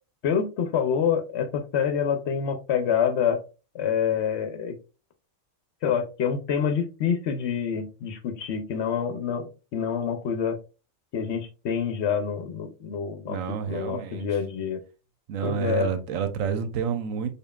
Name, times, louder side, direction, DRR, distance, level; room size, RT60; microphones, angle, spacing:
voice 1, 0.2-3.4 3.7-4.8 5.8-9.4 9.7-10.6 11.1-14.8 15.4-15.9, left 7 dB, 65° left, 0.8 m, -27 dB
voice 2, 13.2-14.4 15.3-17.3, right 7 dB, 90° right, 1.0 m, -29 dB
5.1 x 2.3 x 2.2 m
omnidirectional pair, 1.3 m